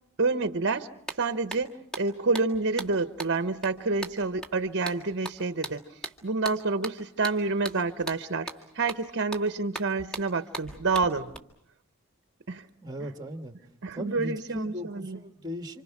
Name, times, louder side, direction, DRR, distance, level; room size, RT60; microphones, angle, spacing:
voice 1, 0.2-5.8 6.2-8.5 8.7-11.3 12.5-12.7 13.8-15.2, right 3 dB, 55° right, 0.9 m, -28 dB
sound 1, 0.7-0.8 1.1-11.4, right 2 dB, 5° left, 1.7 m, -40 dB
voice 2, 12.8-13.5 13.9-15.8, equal, 20° right, 1.6 m, -37 dB
29.0 x 26.5 x 6.0 m
head